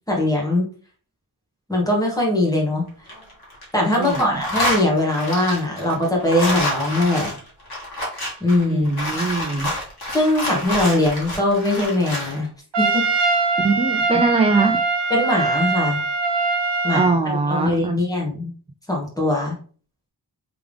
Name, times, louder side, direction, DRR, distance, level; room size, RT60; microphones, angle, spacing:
voice 1, 0.1-0.7 1.7-2.8 3.7-7.3 8.4-8.9 10.1-12.5 12.8-13.0 15.1-16.0 16.8-18.5 18.9-19.5, left 1 dB, 10° left, -2 dB, 1.6 m, -21 dB
sound 1, 2.9-3.6 3.9-12.4, left 1 dB, 60° left, 1.8 m, -28 dB
voice 2, 4.0-4.3 8.7-9.7 13.6-14.8 16.9-18.0, right 4 dB, 15° right, 5 dB, 0.3 m, -21 dB
Trumpet, 12.7-17.2, right 4 dB, 80° right, 0.8 m, -22 dB
3.5 x 3.5 x 3.5 m, 0.42 s
wide cardioid pair, 120°, 42 cm